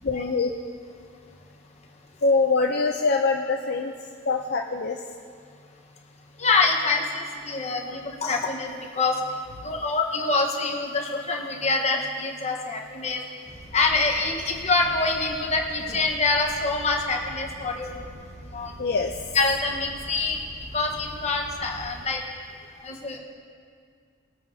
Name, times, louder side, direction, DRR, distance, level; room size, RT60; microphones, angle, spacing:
voice 1, 0.0-0.5 2.2-3.9 4.3-5.0 7.9-8.0 18.8-19.1, left 4 dB, 50° left, 2 dB, 0.5 m, -24 dB
voice 2, 6.4-9.2 9.6-13.2 13.7-18.0 18.5-18.7 19.3-20.4 20.7-22.2 22.8-23.2, left 3 dB, 35° left, 0 dB, 1.1 m, -25 dB
sound 1, 13.4-22.1, right 1 dB, 30° right, 1.4 m, -43 dB
20.5 x 8.9 x 2.7 m, 2.2 s
head